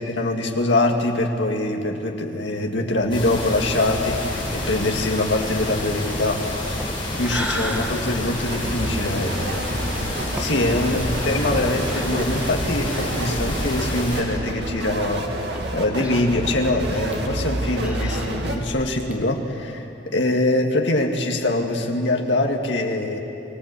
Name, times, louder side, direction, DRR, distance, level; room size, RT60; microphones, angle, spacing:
voice 1, 0.1-6.9 7.2-23.2, left 2 dB, 75° left, 2 dB, 2.0 m, -24 dB
sound 1, 2.8-13.1 13.4-13.5 13.8-13.9 14.6-19.1, equal, 10° right, 1.9 m, -37 dB
sound 2, 3.1-14.2, left 1 dB, 25° left, 7.6 m, -29 dB
sound 3, 8.3-18.6, right 1 dB, 60° right, 2.3 m, -29 dB
24.0 x 18.0 x 8.4 m, 2.9 s
head